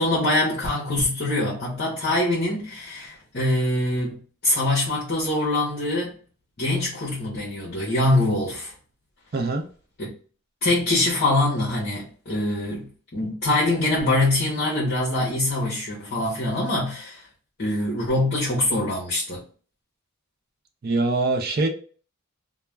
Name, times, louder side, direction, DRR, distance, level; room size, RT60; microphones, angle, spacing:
voice 1, 0.0-6.1 6.6-8.7 10.0-10.1 10.6-17.3 17.6-19.4, left 1 dB, 45° left, 0.7 m, -24 dB
voice 2, 9.3-9.6 20.8-21.7, right 3 dB, 45° right, 0.4 m, -23 dB
2.3 x 2.1 x 3.1 m
head